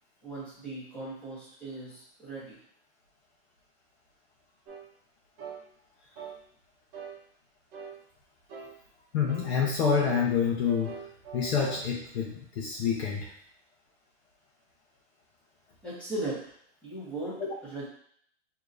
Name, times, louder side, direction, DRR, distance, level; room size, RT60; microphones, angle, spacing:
voice 1, 0.2-2.6 15.8-16.4 16.8-17.9, right 2 dB, 5° left, -10 dB, 1.2 m, -38 dB
sound 1, 4.7-4.8 5.4-5.6 6.1-6.4 6.9-7.2 7.7-8.0 8.5-8.7 9.3-9.5 10.0-11.8, right 6 dB, 35° right, 1.0 m, -43 dB
voice 2, 9.1-11.0 11.3-13.3 17.4-17.5, left 6 dB, 70° left, -2 dB, 0.9 m, -27 dB
4.8 x 2.8 x 2.6 m, 0.64 s
supercardioid pair, 170°, 33 cm